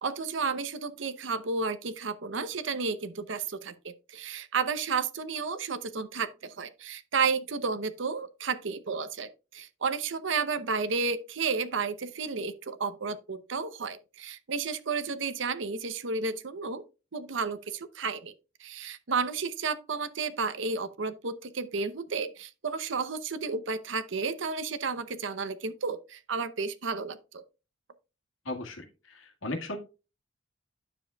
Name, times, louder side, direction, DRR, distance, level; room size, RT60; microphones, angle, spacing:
voice 1, 0.0-16.8 17.1-18.3 18.6-27.4, right 5 dB, 70° right, 0.7 m, -32 dB
voice 2, 28.5-29.8, left 2 dB, 85° left, 1.8 m, -36 dB
9.7 x 7.0 x 2.3 m
head